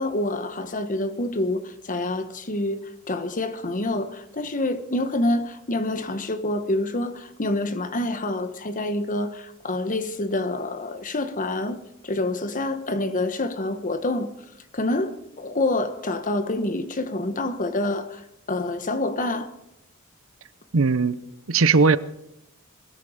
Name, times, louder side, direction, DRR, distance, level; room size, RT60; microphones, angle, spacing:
voice 1, 0.0-2.8 3.1-14.3 14.7-18.2 18.5-19.5, left 2 dB, 40° left, 1.2 m, -27 dB
voice 2, 20.7-21.2 21.5-22.0, right 4 dB, 70° right, 0.8 m, -18 dB
21.0 x 13.5 x 5.1 m
head